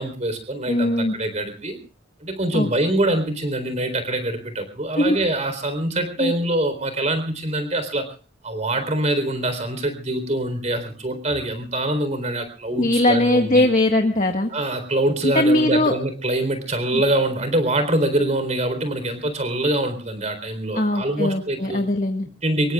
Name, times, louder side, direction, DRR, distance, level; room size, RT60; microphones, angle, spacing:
voice 1, 0.0-1.8 2.2-8.1 8.4-13.6 14.5-21.8 22.4-22.7, right 1 dB, 35° right, 9 dB, 4.0 m, -24 dB
voice 2, 0.7-1.1 2.5-2.7 4.9-5.2 6.2-6.3 12.8-14.5 15.2-16.0 16.9-17.0 20.7-22.3, left 1 dB, 40° left, 4 dB, 1.7 m, -20 dB
25.5 x 22.5 x 2.4 m, 0.37 s
head